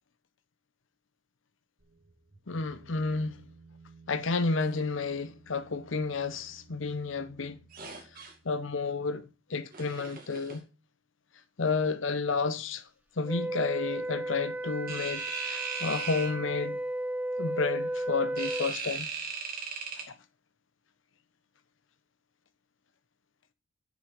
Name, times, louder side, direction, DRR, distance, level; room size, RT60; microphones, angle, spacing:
sound 1, 1.8-9.2, right 3 dB, 85° right, 2.6 m, -57 dB
voice 1, 2.5-3.4 4.1-7.6 8.4-10.7 11.6-12.8 13.2-16.8 17.4-19.1 20.1-20.2, left 4 dB, 70° left, 0.8 m, -31 dB
sound 2, 7.7-8.3 9.7-10.6 14.9-16.3 18.4-20.0, right 5 dB, 45° right, 2.3 m, -37 dB
Wind instrument woodwind instrument, 13.2-18.7, right 1 dB, 10° right, 0.5 m, -34 dB
6.7 x 6.3 x 6.0 m
head